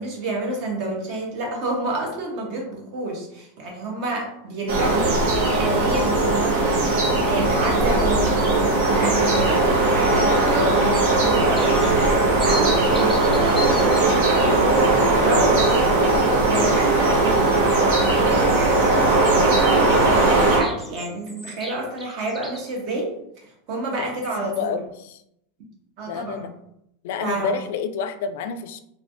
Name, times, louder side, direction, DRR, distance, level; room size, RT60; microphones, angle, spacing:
voice 1, 0.0-5.1 5.6-16.1 16.5-24.8 26.0-26.5 27.2-27.6, right 2 dB, 45° right, 0 dB, 1.0 m, -29 dB
sound 1, 4.7-20.6, right 2 dB, 65° right, 1.1 m, -19 dB
sound 2, 11.5-14.0 19.9-22.8, left 1 dB, ahead, 0.6 m, -37 dB
voice 2, 24.4-25.2 26.1-26.5 27.0-28.8, left 5 dB, 60° left, 9 dB, 0.3 m, -29 dB
3.2 x 3.2 x 2.7 m, 0.77 s
supercardioid pair, 165°, 0 cm